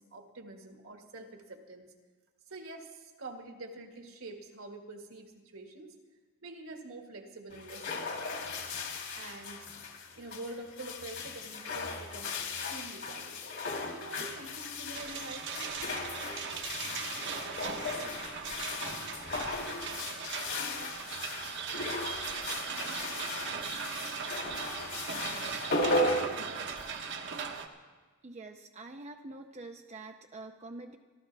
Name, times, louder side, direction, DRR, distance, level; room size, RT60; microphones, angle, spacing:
voice 1, 0.0-1.9 2.5-5.9 6.4-8.5 9.1-9.7 10.2-15.8, right 2 dB, 70° right, 3 dB, 1.8 m, -46 dB
sound 1, 7.5-27.1, left 2 dB, 60° left, 2.3 m, -37 dB
sound 2, 14.9-27.7, right 6 dB, 55° right, 1.1 m, -39 dB
voice 2, 28.2-31.0, right 2 dB, 30° right, 4 dB, 0.6 m, -46 dB
25.0 x 13.5 x 3.4 m, 1.4 s
head